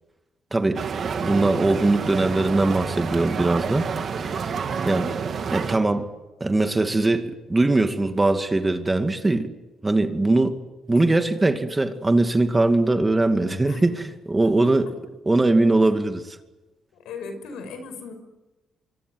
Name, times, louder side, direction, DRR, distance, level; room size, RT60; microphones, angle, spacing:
voice 1, 0.5-0.8 1.2-3.8 4.2-4.5 4.8-5.1 5.5-6.1 6.4-9.5 9.8-10.6 10.9-14.9 15.3-16.4, right 2 dB, 20° right, 2.4 m, -21 dB
sound 1, 0.7-5.8, right 6 dB, 50° right, 2.6 m, -28 dB
voice 2, 4.7-5.0 10.9-11.1 13.6-14.0 14.6-14.8 17.0-18.1, left 4 dB, 85° left, 5.8 m, -38 dB
25.5 x 24.0 x 9.5 m
cardioid pair, 90°, 0 cm